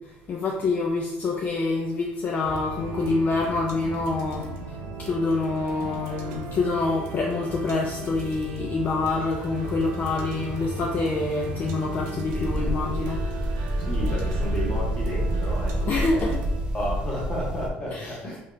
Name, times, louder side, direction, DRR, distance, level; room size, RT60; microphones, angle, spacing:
voice 1, 0.3-4.5 5.0-13.2 15.9-16.3 17.9-18.1, left 3 dB, 45° left, -1 dB, 0.4 m, -26 dB
sound 1, 2.4-17.7, right 3 dB, 80° right, 0.7 m, -36 dB
sound 2, 12.3-17.7, equal, 20° right, 0.5 m, -28 dB
voice 2, 13.8-16.3 16.7-18.4, equal, 20° left, -5 dB, 1.4 m, -32 dB
2.8 x 2.4 x 3.2 m, 0.92 s
supercardioid pair, 85°, 4 cm